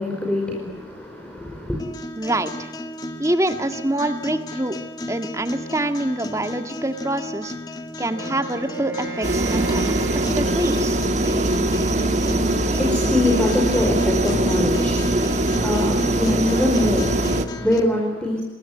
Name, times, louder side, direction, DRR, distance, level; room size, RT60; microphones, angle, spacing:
voice 1, 0.0-1.8 12.0-18.4, left 1 dB, 5° left, -1 dB, 4.9 m, -24 dB
sound 1, 1.8-17.8, left 1 dB, 20° left, 2.1 m, -33 dB
voice 2, 2.2-2.7 3.2-4.8 5.1-7.5 8.0-10.0 10.3-11.0, right 1 dB, 15° right, 8 dB, 1.7 m, -25 dB
Wind instrument woodwind instrument, 8.0-11.3, right 3 dB, 85° right, 7.6 m, -35 dB
sound 2, 9.2-17.5, right 1 dB, 40° right, 1.8 m, -22 dB
28.5 x 22.0 x 9.6 m, 1.0 s
head